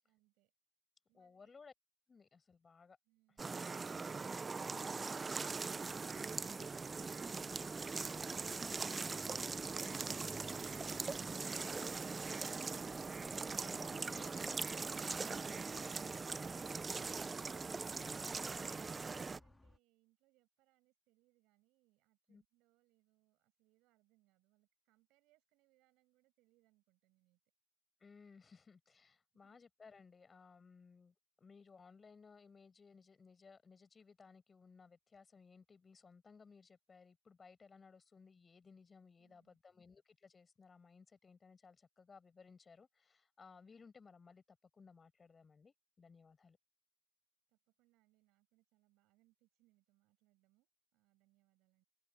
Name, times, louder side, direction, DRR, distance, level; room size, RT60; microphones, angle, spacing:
voice 1, 0.0-0.5 1.1-1.6 17.7-27.4 29.4-29.6 39.2-39.6 47.5-51.8, right 20 dB, 90° right, 7.8 m, -78 dB
voice 2, 1.1-1.7 2.1-3.0 3.9-4.2 9.7-10.2 13.5-14.6 15.0-16.0 22.3-22.4 28.0-46.6, left 5 dB, 50° left, 5.9 m, -61 dB
sound 1, 3.4-19.4, right 4 dB, 45° right, 0.7 m, -41 dB
sound 2, 5.1-19.8, left 2 dB, 20° left, 1.9 m, -62 dB
hypercardioid pair, 40°, 0 cm